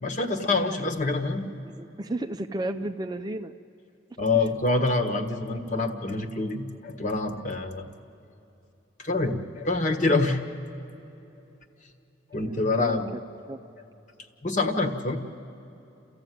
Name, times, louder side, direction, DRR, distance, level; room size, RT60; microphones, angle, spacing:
voice 1, 0.0-1.5 4.2-7.9 9.0-10.4 12.3-13.1 14.4-15.2, left 3 dB, 35° left, 4 dB, 1.4 m, -26 dB
voice 2, 1.5-3.5 12.4-13.6, right 1 dB, 20° right, 7 dB, 0.5 m, -34 dB
29.0 x 14.5 x 9.3 m, 2.9 s
head